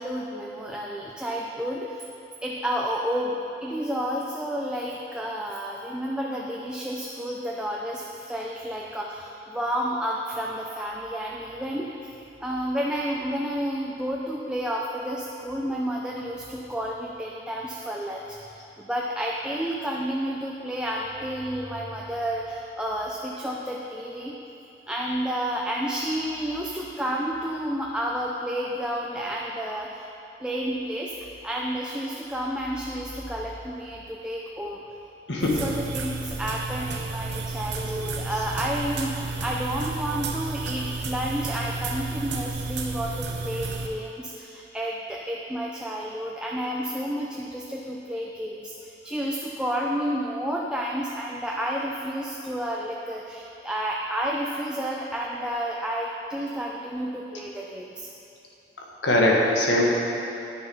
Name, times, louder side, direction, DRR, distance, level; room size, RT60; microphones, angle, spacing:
voice 1, 0.0-2.0 2.4-24.4 24.9-30.1 30.4-34.8 35.4-58.1, equal, 5° right, -2 dB, 0.5 m, -31 dB
voice 2, 35.3-35.6 38.3-38.4 59.0-59.8, left 1 dB, 85° left, -3 dB, 1.6 m, -21 dB
sound 1, 35.4-43.9, right 3 dB, 70° right, 0.9 m, -32 dB
9.8 x 6.6 x 5.5 m, 2.8 s
head